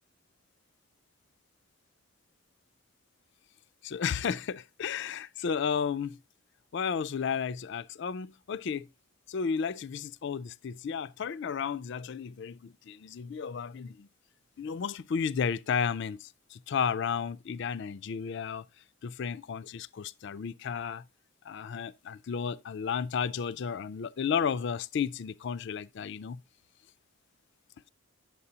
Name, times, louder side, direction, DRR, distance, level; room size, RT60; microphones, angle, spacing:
voice 1, 3.8-6.2 6.7-8.9 9.3-14.1 14.6-18.6 19.0-21.0 21.4-26.4, left 6 dB, 55° left, 0.4 m, -33 dB
9.7 x 7.3 x 2.8 m
head